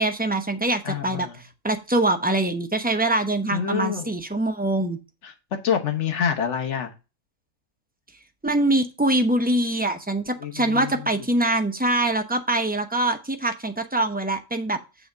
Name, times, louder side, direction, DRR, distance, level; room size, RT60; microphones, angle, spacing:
voice 1, 0.0-1.3 1.6-5.0 8.4-14.8, right 1 dB, 10° right, 6 dB, 0.4 m, -23 dB
voice 2, 0.8-1.4 3.5-4.1 5.2-5.3 5.6-6.9 10.4-11.1, left 8 dB, 60° left, 6 dB, 1.4 m, -27 dB
7.7 x 3.5 x 6.5 m, 0.29 s
omnidirectional pair, 1.4 m